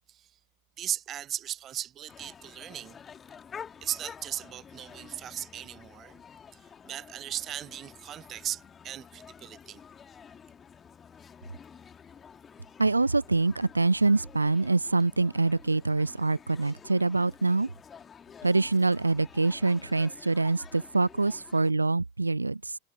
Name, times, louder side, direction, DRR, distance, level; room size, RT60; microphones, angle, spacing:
voice 1, 0.8-3.0 3.8-6.2 6.5-6.6 6.8-9.8, right 11 dB, 30° right, 0.7 m, -37 dB
sound 1, 2.1-21.7, left 7 dB, 20° left, 2.5 m, -50 dB
voice 2, 12.8-17.7 18.4-22.8, right 3 dB, 80° right, 0.4 m, -25 dB
figure-of-eight pair, 90°, 0 cm